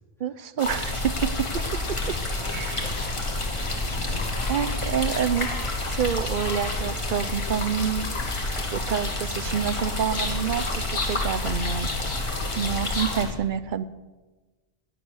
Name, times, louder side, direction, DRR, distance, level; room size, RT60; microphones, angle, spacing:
voice 1, 0.2-1.6 1.9-2.2 2.5-2.9 4.5-8.1 8.7-10.7 11.1-12.3 12.6-13.8, right 8 dB, 55° right, 14 dB, 0.7 m, -28 dB
sound 1, 0.6-13.3, left 2 dB, 85° left, 1.6 m, -31 dB
sound 2, 0.6-13.2, left 2 dB, 30° left, 1.7 m, -33 dB
voice 2, 2.0-4.3, left 3 dB, ahead, -4 dB, 3.8 m, -43 dB
20.0 x 7.6 x 6.4 m, 1.3 s
omnidirectional pair, 1.0 m